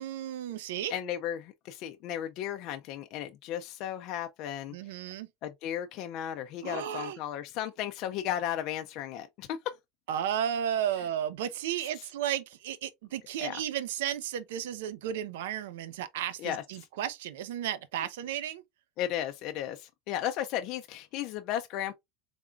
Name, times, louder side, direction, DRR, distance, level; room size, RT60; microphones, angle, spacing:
voice 1, 0.0-0.9 4.7-5.3 6.6-7.2 10.1-18.6, right 10 dB, 85° right, 0.6 m, -33 dB
voice 2, 0.9-4.7 5.4-9.6 13.4-13.6 16.4-16.6 19.0-21.9, left 11 dB, 55° left, 0.5 m, -35 dB
3.7 x 3.4 x 2.3 m
supercardioid pair, 125°, 0 cm